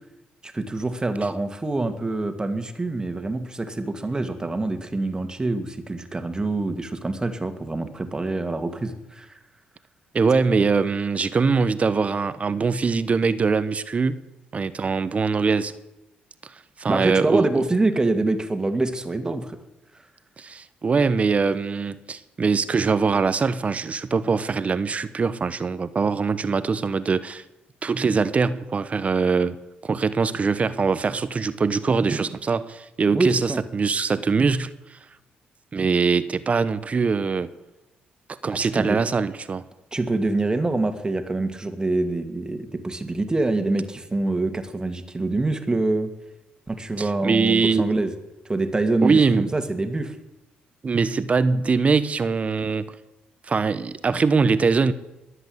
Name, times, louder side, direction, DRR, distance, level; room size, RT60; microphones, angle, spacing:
voice 1, 0.4-9.4 16.9-19.6 33.1-33.6 38.5-39.0 39.9-46.1 46.7-48.1 48.5-50.2, right 2 dB, 20° right, 8 dB, 2.1 m, -25 dB
voice 2, 10.1-14.2 14.5-15.7 16.4-17.6 20.4-27.4 27.8-29.6 29.8-35.0 35.7-37.5 38.4-39.6 47.0-47.9 49.0-49.5 50.8-52.9 53.5-54.9, right 4 dB, 40° right, 14 dB, 0.9 m, -22 dB
21.0 x 8.0 x 7.9 m, 0.98 s
supercardioid pair, 70°, 4 cm